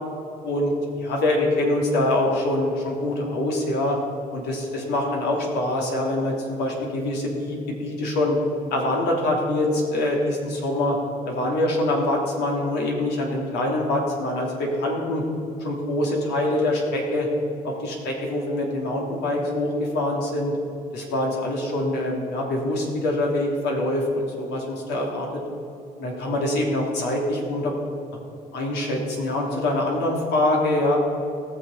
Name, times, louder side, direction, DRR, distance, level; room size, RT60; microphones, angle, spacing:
voice 1, 1.0-4.0 4.3-8.4 8.7-11.0 11.2-15.2 15.6-17.3 17.6-20.5 20.9-25.3 26.0-27.7 28.5-31.0, left 1 dB, 85° left, -1 dB, 3.1 m, -24 dB
18.5 x 6.5 x 5.5 m, 2.8 s
cardioid pair, 110°, 17 cm